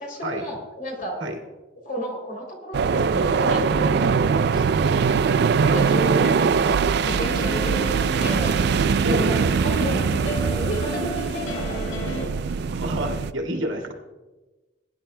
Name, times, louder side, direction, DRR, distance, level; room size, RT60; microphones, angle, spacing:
voice 1, 0.0-1.2 1.8-5.0 5.7-8.5 9.1-12.3, equal, 45° left, 0 dB, 3.2 m, -32 dB
sound 1, 2.7-13.3, right 5 dB, 55° right, 0.3 m, -22 dB
sound 2, 7.0-12.3, equal, 80° left, 1.3 m, -33 dB
voice 2, 9.0-9.5 12.7-13.9, right 1 dB, 80° right, 1 dB, 2.0 m, -28 dB
21.5 x 10.5 x 2.2 m, 1.2 s
head